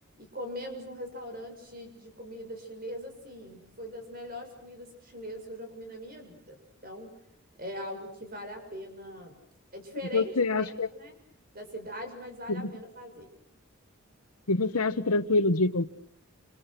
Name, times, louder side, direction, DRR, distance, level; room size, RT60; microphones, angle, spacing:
voice 1, 0.2-6.6 6.8-7.1 7.6-9.4 9.7-10.3 10.6-11.1 11.5-13.3, equal, 40° right, 6.9 m, -41 dB
voice 2, 10.1-10.9 12.5-12.7 14.5-15.9, left 3 dB, 85° left, 1.3 m, -26 dB
29.0 x 28.5 x 6.0 m
head